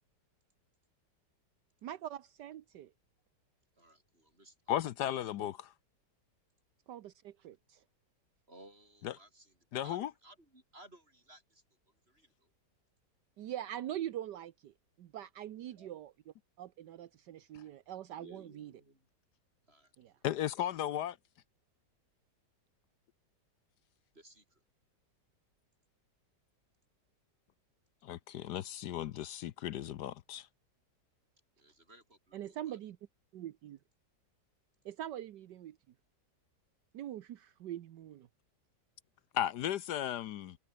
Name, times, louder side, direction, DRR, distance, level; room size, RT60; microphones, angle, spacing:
voice 1, 1.8-2.9 6.9-7.8 13.4-16.1 16.6-18.2 32.3-32.9 33.3-33.8 34.8-35.8 36.9-38.3, right 11 dB, 75° right, 1.5 m, -43 dB
voice 2, 3.7-5.5 8.5-12.5 15.5-15.9 18.2-19.1 19.6-20.7 24.1-24.6 31.5-32.9, right 1 dB, 35° right, 7.8 m, -59 dB
voice 3, 4.7-5.5 9.7-10.0 20.2-21.1 28.0-30.5 39.3-40.6, left 11 dB, 70° left, 1.3 m, -35 dB
omnidirectional pair, 1.9 m